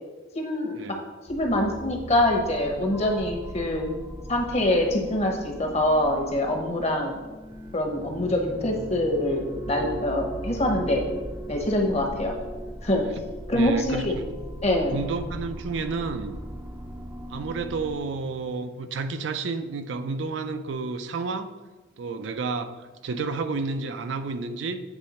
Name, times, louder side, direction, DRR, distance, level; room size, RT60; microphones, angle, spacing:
voice 1, 0.3-1.0 1.3-3.9 4.3-7.2 7.7-11.1 11.5-12.4 12.8-13.1 13.5-14.2 14.6-15.0, left 1 dB, 35° left, 2 dB, 0.9 m, -24 dB
sound 1, 1.3-18.0, right 1 dB, 10° right, 0.5 m, -38 dB
voice 2, 13.5-14.4 14.9-16.4 17.3-21.5 22.0-24.8, right 4 dB, 70° right, 9 dB, 0.4 m, -31 dB
8.1 x 3.3 x 4.2 m, 1.2 s
head